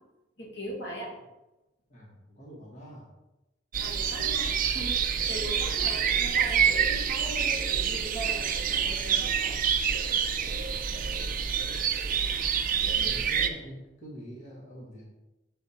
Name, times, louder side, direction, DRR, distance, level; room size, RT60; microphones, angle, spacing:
voice 1, 0.4-1.1 3.8-9.6 12.9-13.3, equal, 65° left, -2 dB, 1.6 m, -40 dB
voice 2, 1.9-3.1 12.9-15.0, equal, 40° left, -4 dB, 1.3 m, -45 dB
sound 1, 3.7-13.5, right 7 dB, 45° right, 0.5 m, -27 dB
6.9 x 4.2 x 4.1 m, 0.99 s
head